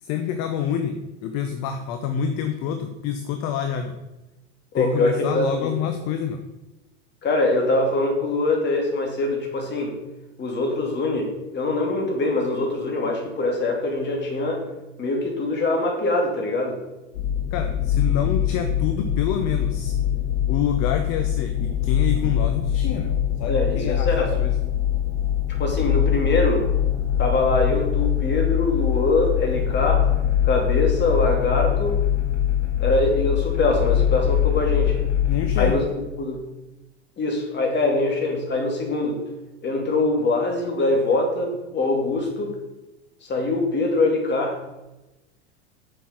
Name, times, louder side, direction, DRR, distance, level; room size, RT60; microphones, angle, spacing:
voice 1, 0.0-4.0 4.7-6.4 17.5-19.9 20.5-24.6 35.3-35.9, left 8 dB, 50° left, 7 dB, 1.0 m, -27 dB
voice 2, 4.7-5.7 7.2-10.0 10.4-14.6 15.0-16.8 23.5-24.3 25.6-26.7 27.2-30.1 30.4-32.0 32.8-35.0 35.6-35.8 36.2-36.4 37.2-39.2 39.6-42.6 43.2-44.6, left 2 dB, 30° left, 2 dB, 2.8 m, -23 dB
sound 1, 17.1-35.7, left 10 dB, 85° left, 2.7 m, -23 dB
7.1 x 7.1 x 6.0 m, 1.0 s
hypercardioid pair, 105°, 35 cm